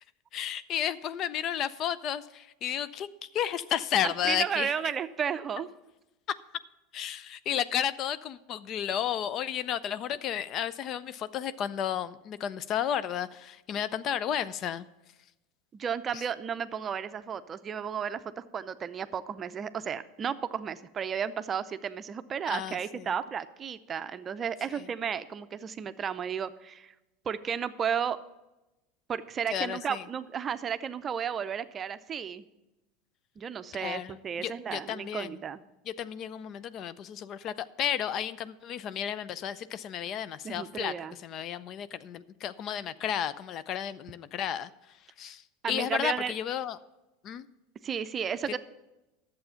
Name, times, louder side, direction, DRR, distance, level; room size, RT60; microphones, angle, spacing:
voice 1, 0.3-4.7 6.9-14.9 16.1-16.2 22.5-23.1 24.7-24.8 29.5-30.0 33.7-35.4 35.9-40.9 41.2-44.7 45.2-45.4 45.7-46.8 47.2-47.5, left 9 dB, 45° left, 16 dB, 0.4 m, -32 dB
voice 2, 4.0-5.7 15.7-26.9 27.2-28.2 29.1-32.4 33.4-35.6 40.4-41.2 45.6-46.3 47.8-48.6, right 7 dB, 30° right, 12 dB, 0.5 m, -33 dB
11.0 x 7.6 x 5.7 m, 0.99 s
hypercardioid pair, 85°, 0 cm